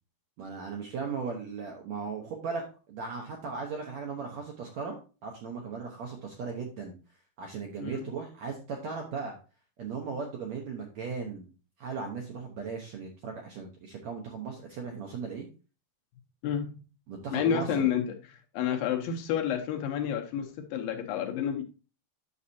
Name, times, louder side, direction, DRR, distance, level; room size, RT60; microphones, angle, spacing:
voice 1, 0.4-5.0 5.2-6.9 7.4-9.4 9.8-11.5 11.8-15.5 17.1-17.9, right 5 dB, 70° right, 1 dB, 1.7 m, -37 dB
voice 2, 17.3-18.1 18.5-21.6, left 8 dB, 75° left, 3 dB, 2.5 m, -29 dB
9.7 x 6.5 x 2.8 m, 0.34 s
omnidirectional pair, 4.6 m